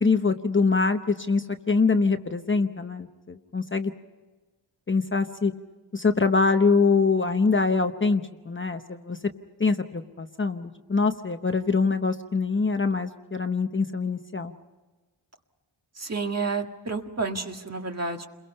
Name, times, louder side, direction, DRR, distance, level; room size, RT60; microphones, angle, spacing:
voice 1, 0.0-3.9 4.9-5.5 5.9-9.2 9.6-14.5, left 4 dB, 25° left, 7 dB, 0.8 m, -24 dB
voice 2, 16.0-18.3, right 4 dB, 35° right, 4 dB, 1.9 m, -30 dB
29.5 x 22.5 x 5.5 m, 1.2 s
wide cardioid pair, 140°, 45 cm